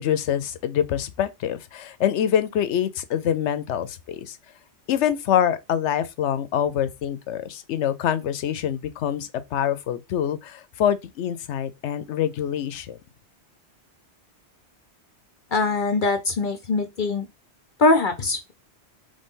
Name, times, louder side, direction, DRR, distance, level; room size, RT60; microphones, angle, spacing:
voice 1, 0.0-4.4 4.9-13.0, left 9 dB, 85° left, 0.9 m, -25 dB
voice 2, 15.5-17.3 17.8-18.5, left 3 dB, 50° left, 0.8 m, -22 dB
3.9 x 3.4 x 3.7 m
omnidirectional pair, 1.1 m